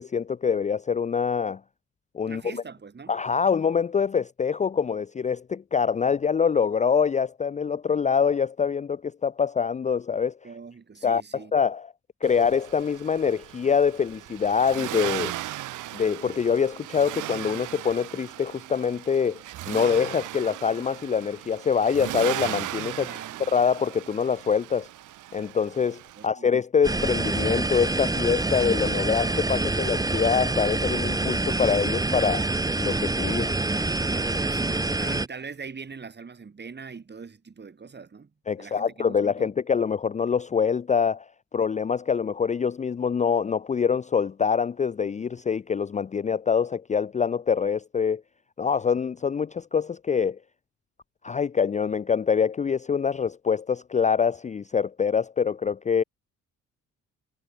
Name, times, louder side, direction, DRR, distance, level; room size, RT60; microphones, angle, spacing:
voice 1, 0.0-1.6 2.1-2.6 3.1-10.3 11.0-11.2 11.5-11.9 12.2-15.3 15.9-19.4 19.7-23.1 23.5-24.9 25.3-32.4 32.8-33.5 38.5-41.2 41.5-48.2 48.6-50.4 51.2-56.0, left 6 dB, 25° left, 0.5 m, -25 dB
voice 2, 2.3-3.2 10.4-11.5 23.0-23.4 26.2-26.5 34.0-38.3 38.6-39.5, right 5 dB, 35° right, 8.0 m, -42 dB
Accelerating revving vroom, 12.2-26.3, right 15 dB, 85° right, 4.6 m, -37 dB
sound 1, 26.8-35.3, right 2 dB, 10° right, 1.2 m, -26 dB
cardioid pair, 90°, 30 cm